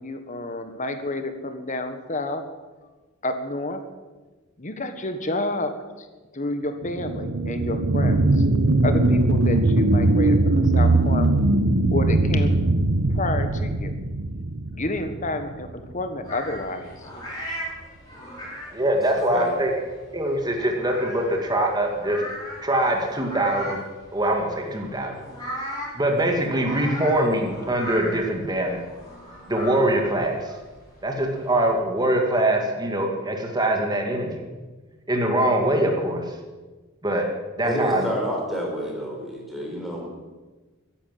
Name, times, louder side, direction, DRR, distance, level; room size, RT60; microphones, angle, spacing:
voice 1, 0.0-2.5 3.2-3.8 4.6-6.1 6.3-8.4 8.8-11.4 11.9-12.6 13.1-13.9 14.7-17.1, left 2 dB, 35° left, 8 dB, 1.4 m, -30 dB
sound 1, 6.8-15.9 16.3-16.4, right 2 dB, 65° right, 1.1 m, -20 dB
sound 2, 16.2-31.7, equal, 20° left, 5.3 m, -38 dB
voice 2, 18.7-19.7 20.1-22.2 22.6-23.8 24.1-25.1 26.0-28.8 29.5-30.4 31.0-34.4 35.1-36.2 37.0-37.3 37.6-38.1, right 1 dB, 20° right, 2 dB, 2.0 m, -23 dB
voice 3, 37.6-40.1, equal, ahead, -2 dB, 4.3 m, -28 dB
14.5 x 11.0 x 7.5 m, 1.3 s
head